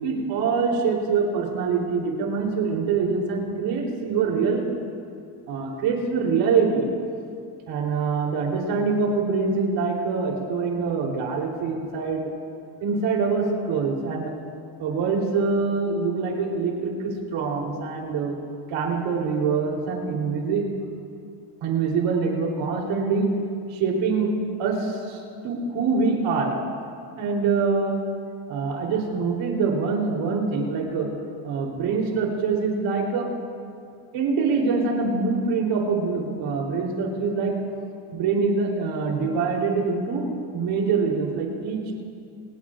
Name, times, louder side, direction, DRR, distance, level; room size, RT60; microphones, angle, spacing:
voice 1, 0.0-4.6 5.5-6.9 7.7-12.3 12.8-14.3 14.8-18.3 18.7-20.6 21.6-23.3 23.7-24.3 24.6-26.6 27.2-28.0 28.5-31.1 31.4-33.3 34.1-37.6 38.1-41.9, right 4 dB, 75° right, 0 dB, 3.7 m, -24 dB
26.0 x 18.5 x 2.5 m, 2.4 s
cardioid pair, 140°, 44 cm